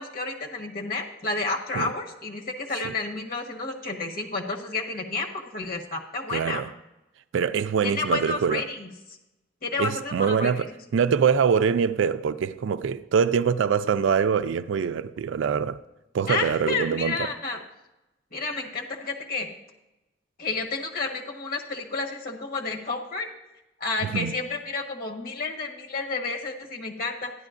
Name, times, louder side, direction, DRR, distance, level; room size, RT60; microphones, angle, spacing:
voice 1, 0.0-6.6 7.8-9.2 9.6-10.7 16.3-17.6 18.3-19.5 20.4-23.3 23.8-27.3, left 3 dB, 50° left, 1.3 m, -31 dB
voice 2, 6.3-6.7 7.3-8.7 9.8-15.8 16.1-17.2 24.0-24.4, right 6 dB, 75° right, 0.4 m, -24 dB
12.5 x 10.5 x 2.5 m
head